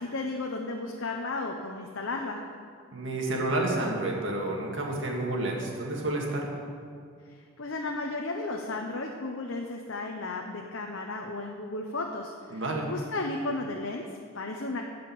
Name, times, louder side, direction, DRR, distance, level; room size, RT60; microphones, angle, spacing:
voice 1, 0.0-2.4 7.6-14.8, left 2 dB, 65° left, 1 dB, 0.8 m, -34 dB
voice 2, 2.9-6.5 12.5-12.9, right 2 dB, 60° right, -1 dB, 2.0 m, -30 dB
13.0 x 5.2 x 8.6 m, 2.2 s
head